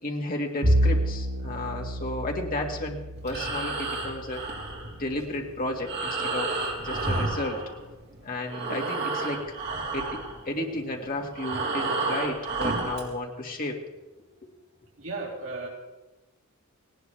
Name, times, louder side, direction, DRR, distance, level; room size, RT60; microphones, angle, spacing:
voice 1, 0.0-4.4 5.0-7.6 8.2-9.4 9.9-10.1 10.4-13.8 14.4-14.5, left 1 dB, 45° left, 1 dB, 2.0 m, -33 dB
Bowed string instrument, 0.6-5.2, equal, 90° right, 2.1 m, -29 dB
Breathing, 3.2-8.2 8.4-13.1, right 3 dB, 50° right, 3.6 m, -31 dB
voice 2, 15.0-15.7, right 3 dB, 70° right, -3 dB, 3.5 m, -34 dB
19.0 x 18.0 x 3.4 m, 1.1 s
head